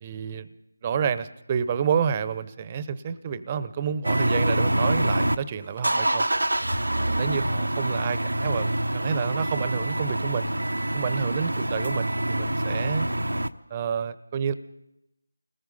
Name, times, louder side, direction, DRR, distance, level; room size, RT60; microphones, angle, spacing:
voice 1, 0.0-0.5 0.8-6.3 7.1-10.5 10.9-13.1 13.7-14.5, right 7 dB, 25° right, 15 dB, 0.8 m, -29 dB
sound 1, 4.0-5.4 5.8-13.5, right 1 dB, 90° right, 1.0 m, -26 dB
29.5 x 19.5 x 5.5 m, 0.87 s
figure-of-eight pair, 165°, 0 cm